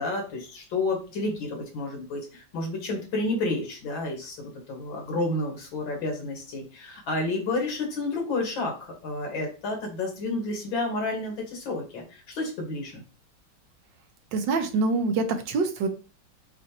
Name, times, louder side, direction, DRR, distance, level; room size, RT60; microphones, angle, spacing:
voice 1, 0.0-13.0, left 2 dB, 85° left, 1 dB, 2.2 m, -30 dB
voice 2, 14.3-15.9, right 3 dB, 75° right, 7 dB, 1.5 m, -25 dB
7.2 x 2.6 x 2.9 m, 0.34 s
omnidirectional pair, 2.1 m